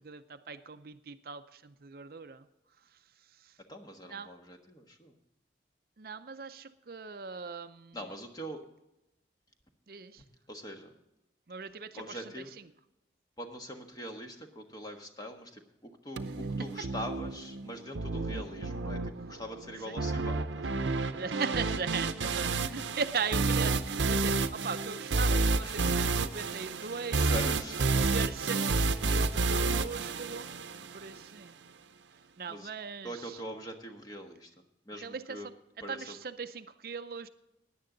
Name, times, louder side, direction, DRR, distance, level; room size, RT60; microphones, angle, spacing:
voice 1, 0.0-2.5 3.4-3.6 4.1-4.3 6.0-8.0 9.9-10.2 11.5-12.4 16.8-16.9 19.9-20.0 21.1-27.4 28.0-30.5 30.9-31.6 32.4-33.4 34.9-35.5 35.9-37.3, right 5 dB, 55° right, 11 dB, 0.5 m, -39 dB
voice 2, 3.7-5.2 7.9-8.6 10.5-10.9 11.9-12.5 13.4-20.9 25.6-26.1 27.1-28.0 32.5-32.7 33.0-34.5 34.9-35.5 35.8-36.2, equal, 20° left, 4 dB, 1.3 m, -43 dB
sound 1, 16.2-31.2, right 3 dB, 90° right, 0.7 m, -30 dB
16.5 x 10.5 x 3.9 m, 0.91 s
head